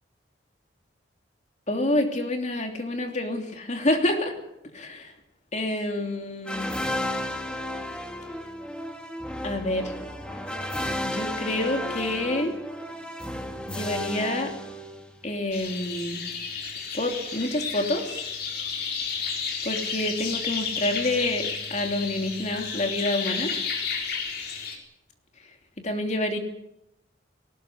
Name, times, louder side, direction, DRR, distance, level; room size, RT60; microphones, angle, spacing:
voice 1, 1.7-4.4 4.7-5.1 5.5-6.7 9.4-9.9 11.0-12.5 13.7-14.5 15.2-16.2 16.9-18.2 19.6-23.5 25.8-26.4, left 1 dB, 40° left, 4 dB, 3.0 m, -28 dB
sound 1, 6.5-15.3, left 1 dB, 5° left, 2.2 m, -33 dB
sound 2, 15.5-24.8, left 5 dB, 55° left, 4.3 m, -32 dB
19.0 x 19.0 x 8.4 m, 0.84 s
head